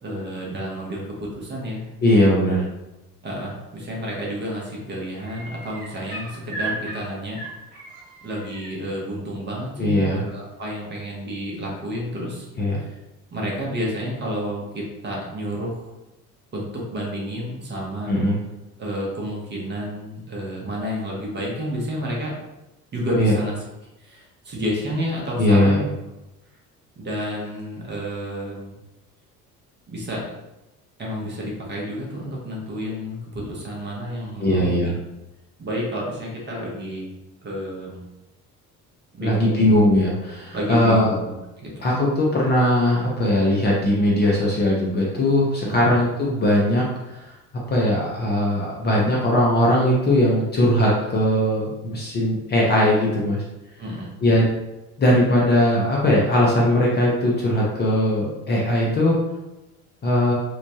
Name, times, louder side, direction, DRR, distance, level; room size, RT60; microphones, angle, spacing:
voice 1, 0.0-1.9 3.2-7.4 8.2-12.5 12.7-13.0 13.3-15.9 16.5-18.1 18.8-22.3 22.9-23.6 24.0-25.8 27.0-28.8 29.9-30.2 31.0-34.9 35.6-37.1 37.4-38.0 39.1-39.6 40.5-41.9 45.6-46.0 53.8-54.2, equal, 25° right, -3 dB, 0.8 m, -30 dB
voice 2, 2.0-2.6 9.8-10.2 12.6-12.8 18.1-18.4 23.2-23.3 25.4-25.8 34.4-34.9 39.2-41.2 41.8-47.3 47.7-53.4 54.2-54.5 55.0-59.2 60.0-60.3, left 1 dB, 20° left, -4 dB, 0.6 m, -19 dB
sound 1, 4.0-4.4 4.6-8.7 10.4-10.5, right 2 dB, 65° right, 1.1 m, -36 dB
3.0 x 2.1 x 2.8 m, 0.96 s
figure-of-eight pair, 60°, 46 cm